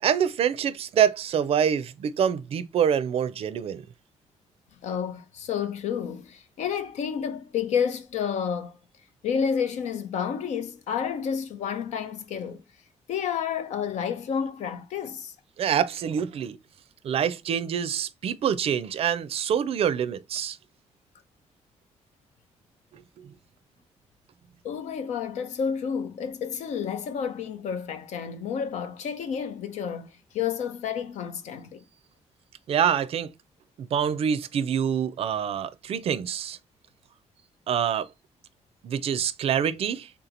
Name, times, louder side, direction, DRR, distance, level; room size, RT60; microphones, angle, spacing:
voice 1, 0.0-3.8 15.6-16.6 17.0-20.6 22.9-23.3 32.7-33.3 33.8-36.6 37.7-38.1 38.8-40.1, right 8 dB, 55° right, 0.4 m, -26 dB
voice 2, 4.8-8.8 9.2-12.6 13.1-15.3 24.6-30.1 30.3-31.8, left 7 dB, 80° left, 0.6 m, -30 dB
3.5 x 2.9 x 3.7 m
cardioid pair, 125°, 12 cm